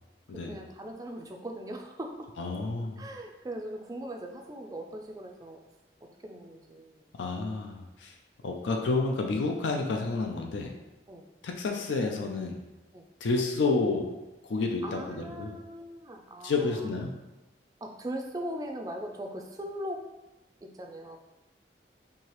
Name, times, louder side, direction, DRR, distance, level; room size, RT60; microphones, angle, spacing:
voice 1, 0.5-2.3 3.0-5.6 6.2-7.0 11.1-11.2 12.9-13.0 14.8-17.0 17.8-20.0 20.6-21.2, right 1 dB, 20° right, 3 dB, 0.3 m, -39 dB
voice 2, 2.4-3.0 7.2-8.1 8.4-10.7 11.4-12.6 13.2-14.1 14.5-15.6 16.4-17.1, left 3 dB, 85° left, 2 dB, 0.4 m, -30 dB
4.6 x 2.8 x 3.0 m, 1.0 s
head